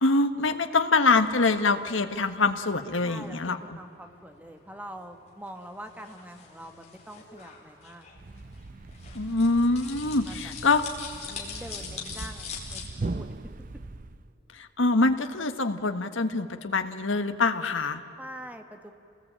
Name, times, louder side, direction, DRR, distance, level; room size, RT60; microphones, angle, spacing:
voice 1, 0.0-3.6 9.1-10.8 14.5-18.0, left 3 dB, 85° left, 8 dB, 1.4 m, -24 dB
sound 1, 1.2-12.9, left 6 dB, 35° left, 4.5 m, -44 dB
voice 2, 3.0-8.1 10.2-10.5 11.3-13.3 18.2-18.9, right 1 dB, 10° right, 6 dB, 1.5 m, -44 dB
Thump thud, 8.1-14.3, right 2 dB, 45° right, 0.6 m, -39 dB
29.0 x 20.0 x 8.9 m, 2.9 s
head